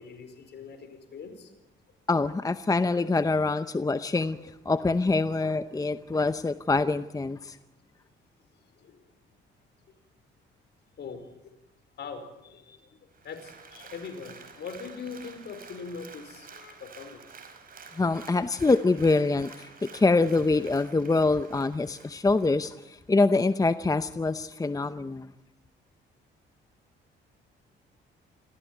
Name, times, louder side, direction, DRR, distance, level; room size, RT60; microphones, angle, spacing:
voice 1, 0.0-1.5 4.4-4.5 8.8-9.0 11.0-11.6 12.0-12.9 13.2-17.2, left 5 dB, 60° left, 7 dB, 4.8 m, -42 dB
voice 2, 2.1-7.6 18.0-25.3, left 3 dB, 15° left, 12 dB, 0.8 m, -25 dB
Applause, 13.1-22.9 23.3-23.4, right 5 dB, 45° right, 4.5 m, -50 dB
26.5 x 15.5 x 9.5 m, 0.92 s
cardioid pair, 90°, 20 cm